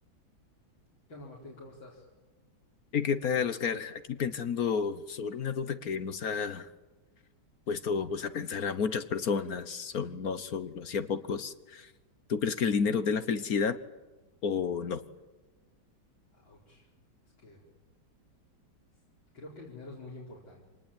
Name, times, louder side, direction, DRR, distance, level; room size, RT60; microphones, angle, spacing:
voice 1, 1.1-2.1 16.3-16.9 17.4-17.6 19.3-20.6, left 2 dB, 70° left, -5 dB, 5.5 m, -47 dB
voice 2, 2.9-6.7 7.7-11.9 12.3-13.8 14.4-15.0, left 6 dB, 55° left, 13 dB, 1.3 m, -31 dB
26.5 x 19.5 x 8.9 m, 1.2 s
omnidirectional pair, 2.2 m